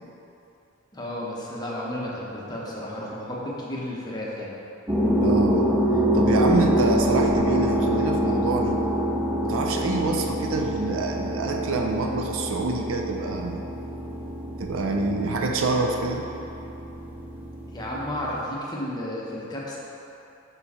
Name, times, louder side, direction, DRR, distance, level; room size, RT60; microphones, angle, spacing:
voice 1, 0.9-4.6 17.7-19.8, left 1 dB, 20° left, -5 dB, 0.8 m, -32 dB
sound 1, 4.9-18.4, equal, 10° right, 0.4 m, -26 dB
voice 2, 5.2-5.7 6.1-8.8 9.4-13.6 14.6-16.3, right 3 dB, 65° right, 3 dB, 0.5 m, -26 dB
5.2 x 4.6 x 4.2 m, 2.9 s
head